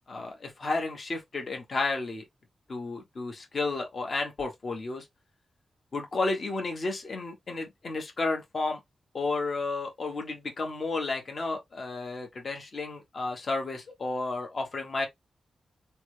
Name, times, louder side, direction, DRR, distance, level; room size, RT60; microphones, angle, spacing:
voice 1, 0.1-2.2 2.7-5.1 5.9-8.8 9.1-15.1, left 3 dB, 55° left, 1.1 m, -32 dB
3.2 x 2.2 x 3.1 m
cardioid pair, 75°, 0 cm